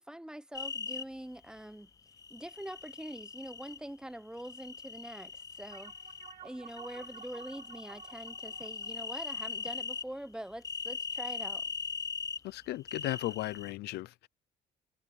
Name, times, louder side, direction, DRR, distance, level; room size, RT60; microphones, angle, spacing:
voice 1, 0.0-1.9 2.3-5.9 6.4-11.7, right 1 dB, 5° right, 1.1 m, -44 dB
sound 1, 0.5-1.0 2.2-3.8 4.4-6.3 6.7-10.1 10.6-12.4 12.9-13.7, left 5 dB, 20° left, 0.4 m, -40 dB
sound 2, 5.7-10.5, right 10 dB, 50° right, 1.9 m, -53 dB
voice 2, 12.4-14.3, left 17 dB, 75° left, 0.6 m, -36 dB
cardioid pair, 110°, 17 cm